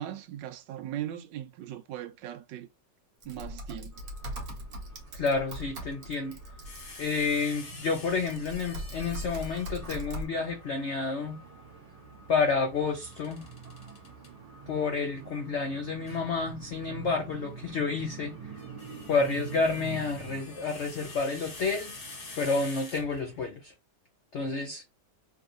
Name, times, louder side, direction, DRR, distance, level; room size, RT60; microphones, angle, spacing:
voice 1, 0.0-2.7 3.2-4.0, right 11 dB, 85° right, 1.3 m, -39 dB
Typing, 3.2-7.4 8.1-10.3, equal, 60° right, 1.3 m, -40 dB
sound 1, 3.9-22.6, right 6 dB, 25° right, 1.1 m, -47 dB
voice 2, 5.1-6.4 7.0-11.4 12.3-13.4 14.7-18.3 19.1-22.0 22.4-23.7 24.3-24.8, left 4 dB, 80° left, 0.6 m, -30 dB
sound 2, 6.6-10.0 12.8-14.3 16.1-16.3 18.4-23.5, left 3 dB, 40° left, 1.1 m, -47 dB
3.6 x 2.7 x 2.5 m
omnidirectional pair, 1.9 m